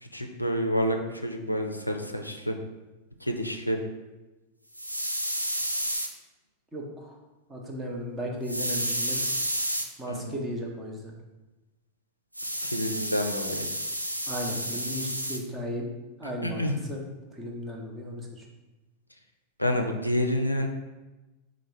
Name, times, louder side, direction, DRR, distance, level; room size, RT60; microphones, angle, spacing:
voice 1, 0.0-2.6 3.2-3.8 10.1-10.3 12.7-13.7 16.4-16.8 19.6-20.7, equal, 85° left, 4 dB, 0.4 m, -28 dB
sound 1, 4.7-6.1 8.5-9.9 12.3-15.4, equal, 90° right, 0.3 m, -30 dB
voice 2, 6.7-7.2 7.5-9.2 10.0-11.1 14.3-15.9 16.2-17.0 17.3-18.5, equal, 15° right, 0 dB, 0.8 m, -35 dB
4.4 x 2.1 x 4.6 m, 1.1 s
figure-of-eight pair, 90°, 0 cm